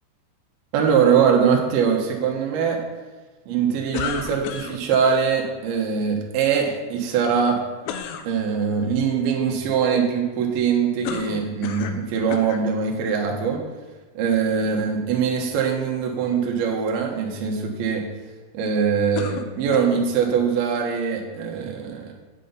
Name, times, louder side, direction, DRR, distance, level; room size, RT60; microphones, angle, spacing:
voice 1, 0.7-2.8 3.5-7.6 8.3-13.6 14.1-18.1 18.5-22.1, right 6 dB, 70° right, 1 dB, 2.6 m, -22 dB
sound 1, 3.9-5.1 7.8-8.3 11.0-12.0 12.3-12.7 13.5-13.6 19.2-20.1, left 8 dB, 90° left, 2.3 m, -31 dB
8.3 x 7.9 x 4.0 m, 1.2 s
omnidirectional pair, 5.4 m